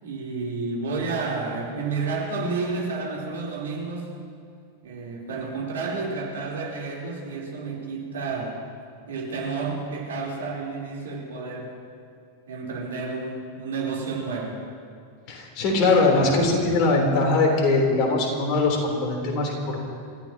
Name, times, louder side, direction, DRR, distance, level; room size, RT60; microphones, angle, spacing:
voice 1, 0.0-4.2 4.8-8.6 9.1-11.8 12.5-14.6, right 4 dB, 65° right, -3 dB, 4.2 m, -30 dB
voice 2, 15.3-19.8, left 3 dB, 40° left, 0 dB, 4.0 m, -21 dB
28.0 x 15.0 x 3.1 m, 2.3 s
figure-of-eight pair, 90°, 0 cm